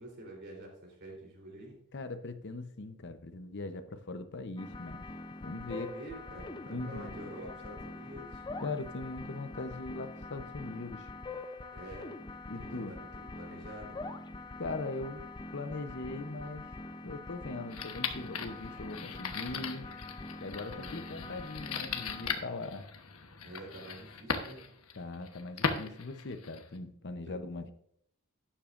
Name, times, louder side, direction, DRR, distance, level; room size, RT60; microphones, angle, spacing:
voice 1, 0.0-1.8 5.7-8.4 11.7-12.1 12.5-14.0 20.7-21.4 23.4-24.6 27.3-27.4, right 1 dB, 50° right, 0 dB, 3.7 m, -47 dB
voice 2, 1.9-5.0 5.4-5.9 6.7-7.3 8.6-11.1 12.5-13.0 14.6-15.2 15.5-16.7 17.0-19.9 20.4-22.9 25.0-27.7, left 3 dB, 50° left, 9 dB, 0.8 m, -40 dB
sound 1, 4.6-22.4, left 2 dB, 20° left, 0.5 m, -44 dB
sound 2, 17.7-26.8, left 5 dB, 70° left, 1.1 m, -39 dB
12.0 x 10.0 x 2.6 m, 0.67 s
head